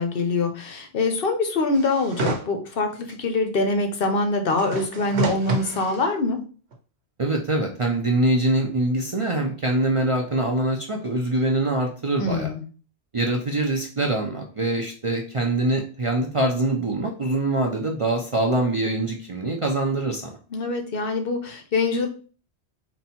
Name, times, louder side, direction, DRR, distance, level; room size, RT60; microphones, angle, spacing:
voice 1, 0.0-6.4 12.2-12.6 20.5-22.1, left 3 dB, 60° left, 6 dB, 0.9 m, -24 dB
sound 1, 1.7-2.4 3.1-3.2 4.5-6.0 6.7-6.8, right 2 dB, 80° right, 1.1 m, -29 dB
voice 2, 7.2-12.5 13.1-20.3, right 2 dB, 40° right, 1 dB, 0.5 m, -24 dB
3.9 x 2.3 x 4.3 m, 0.38 s
omnidirectional pair, 1.1 m